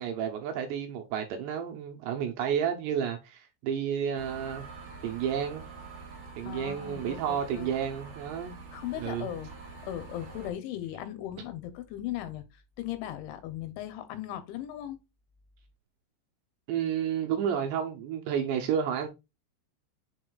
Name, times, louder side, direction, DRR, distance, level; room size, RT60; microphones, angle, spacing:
voice 1, 0.0-4.6 5.0-5.6 6.4-8.5 9.0-9.3 16.7-19.1, right 8 dB, 75° right, 2.7 m, -31 dB
sound 1, 4.2-10.5, right 4 dB, 55° right, 2.3 m, -46 dB
voice 2, 6.5-7.7 8.7-15.0, left 12 dB, 80° left, 3.0 m, -38 dB
6.8 x 6.1 x 2.3 m
omnidirectional pair, 5.7 m